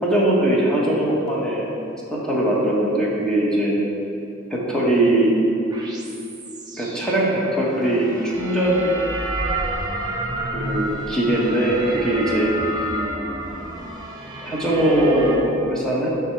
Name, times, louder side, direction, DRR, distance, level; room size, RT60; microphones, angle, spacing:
voice 1, 0.0-1.7 2.1-3.8 4.5-5.3 6.8-8.9 10.5-12.5 12.8-12.9 14.4-16.1, right 1 dB, 5° left, -5 dB, 1.1 m, -20 dB
sound 1, 5.7-15.4, right 1 dB, 20° right, 0.8 m, -30 dB
9.2 x 3.6 x 4.6 m, 2.7 s
head